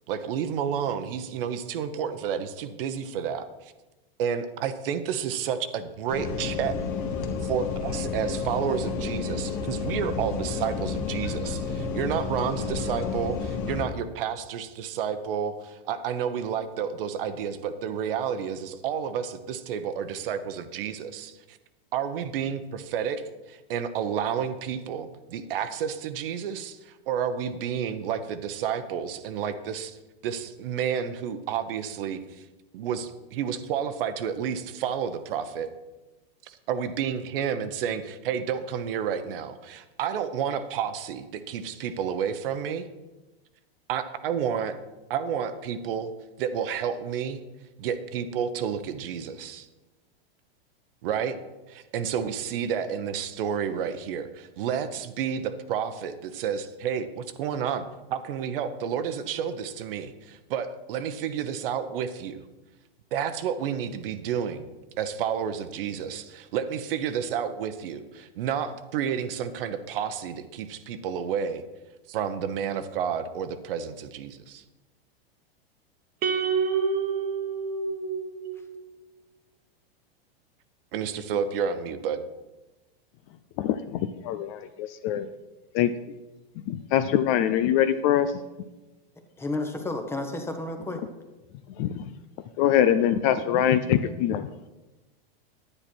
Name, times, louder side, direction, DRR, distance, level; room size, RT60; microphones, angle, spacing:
voice 1, 0.1-3.7 4.2-6.8 7.4-21.6 21.9-30.0 30.2-32.4 32.7-35.7 36.4-42.9 43.9-44.8 45.1-46.1 46.4-47.4 47.8-49.7 51.0-51.4 51.7-62.4 63.1-64.7 65.0-71.6 72.1-74.6 80.9-82.2, right 8 dB, 65° right, 10 dB, 1.0 m, -30 dB
sound 1, 6.1-13.8, left 4 dB, 55° left, 1.8 m, -31 dB
sound 2, 76.2-78.7, right 5 dB, 30° right, 1.1 m, -28 dB
voice 2, 83.6-85.3 85.7-85.9 86.7-88.3 91.8-92.0 92.6-94.5, left 10 dB, 35° left, 12 dB, 0.4 m, -23 dB
voice 3, 89.4-91.0, left 2 dB, 10° left, 5 dB, 0.9 m, -31 dB
10.0 x 9.8 x 4.5 m, 1.1 s
supercardioid pair, 145°, 30 cm